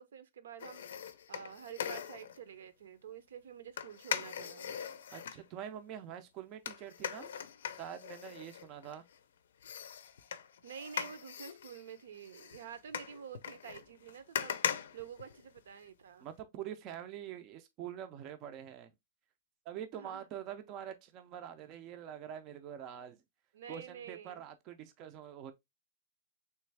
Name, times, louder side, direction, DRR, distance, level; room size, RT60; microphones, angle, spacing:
voice 1, 0.0-4.7 10.6-16.3 19.9-20.3 23.5-24.4, right 8 dB, 80° right, 0.7 m, -49 dB
sound 1, 0.6-2.4 3.8-5.4 6.7-9.2 9.6-15.8 16.2-16.3, left 8 dB, 75° left, 0.5 m, -40 dB
voice 2, 5.1-7.3 7.8-9.0 16.2-18.9 19.7-23.2 23.7-25.5, right 9 dB, 25° right, 0.4 m, -45 dB
3.2 x 3.1 x 3.2 m
supercardioid pair, 175°, 0 cm